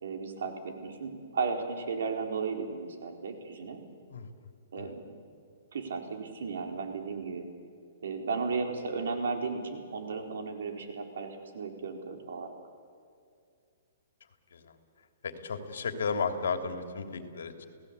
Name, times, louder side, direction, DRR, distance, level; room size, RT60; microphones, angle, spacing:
voice 1, 0.0-3.8 4.7-5.0 5.7-7.5 8.0-12.5, right 4 dB, 75° right, 4 dB, 4.4 m, -35 dB
voice 2, 15.2-17.7, left 5 dB, 85° left, 6 dB, 3.0 m, -34 dB
29.5 x 17.5 x 8.4 m, 2.3 s
hypercardioid pair, 170°, 0 cm